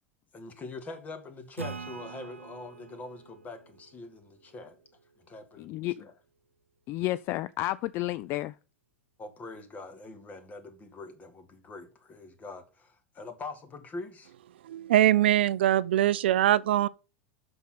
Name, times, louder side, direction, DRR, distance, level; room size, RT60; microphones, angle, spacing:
voice 1, 0.3-4.8 5.2-5.7 6.0-6.1 9.2-14.3, left 3 dB, 25° left, 2.1 m, -43 dB
Acoustic guitar / Strum, 1.6-5.0, right 5 dB, 85° right, 1.0 m, -44 dB
voice 2, 5.6-5.9 6.9-8.5, left 16 dB, 40° left, 0.4 m, -31 dB
voice 3, 14.6-16.9, right 13 dB, 60° right, 0.4 m, -22 dB
8.2 x 6.3 x 5.7 m
figure-of-eight pair, 85°, 7 cm